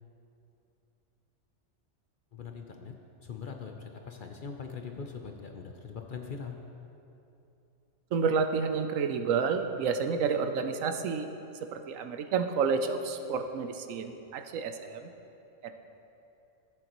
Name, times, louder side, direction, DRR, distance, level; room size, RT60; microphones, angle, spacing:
voice 1, 2.3-2.9 3.2-6.6, left 5 dB, 50° left, 3 dB, 0.6 m, -41 dB
voice 2, 8.1-11.3 11.7-15.1 15.6-15.7, right 5 dB, 80° right, 7 dB, 1.0 m, -30 dB
15.5 x 7.9 x 3.0 m, 2.9 s
omnidirectional pair, 1.4 m